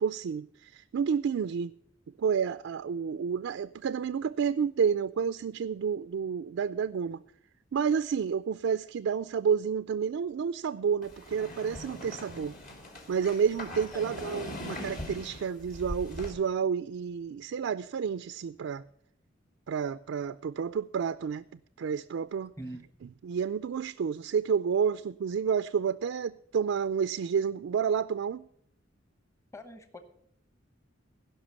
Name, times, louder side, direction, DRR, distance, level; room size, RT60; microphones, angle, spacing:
voice 1, 0.0-1.7 2.2-7.2 7.7-12.6 13.1-18.8 19.7-21.4 21.8-22.5 23.2-28.5, right 6 dB, 85° right, 12 dB, 0.4 m, -30 dB
sound 1, 11.0-16.3, left 1 dB, 45° left, 2.6 m, -41 dB
voice 2, 29.5-30.0, equal, 15° left, 8 dB, 1.0 m, -43 dB
16.5 x 5.7 x 6.9 m, 0.67 s
head